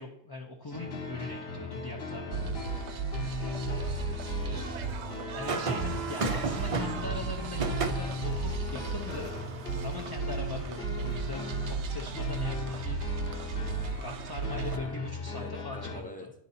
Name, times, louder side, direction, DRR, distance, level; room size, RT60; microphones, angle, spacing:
voice 1, 0.0-2.8 5.4-9.4 9.8-13.0 14.0-16.3, left 3 dB, 30° left, 1 dB, 0.5 m, -41 dB
sound 1, 0.7-16.0, left 3 dB, 65° left, 1.2 m, -38 dB
sound 2, 2.3-14.8, right 5 dB, 80° right, 0.9 m, -35 dB
voice 2, 2.6-3.0 3.3-4.8 14.5-14.9 15.3-16.3, left 1 dB, 10° left, 3 dB, 0.8 m, -47 dB
sound 3, 5.5-11.8 13.6-13.9, right 4 dB, 40° right, 0.5 m, -36 dB
10.0 x 4.0 x 4.1 m, 0.73 s
omnidirectional pair, 1.1 m